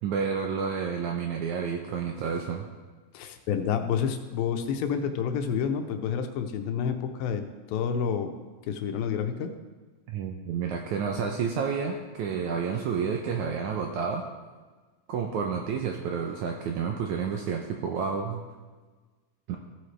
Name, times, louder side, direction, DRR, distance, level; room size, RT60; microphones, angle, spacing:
voice 1, 0.0-2.7 10.1-14.3 15.1-18.4 19.5-19.6, right 6 dB, 80° right, 2 dB, 1.8 m, -30 dB
voice 2, 3.1-7.4 7.7-8.3 8.7-9.5, left 7 dB, 80° left, 6 dB, 2.5 m, -29 dB
15.5 x 7.8 x 3.3 m, 1.3 s
omnidirectional pair, 4.1 m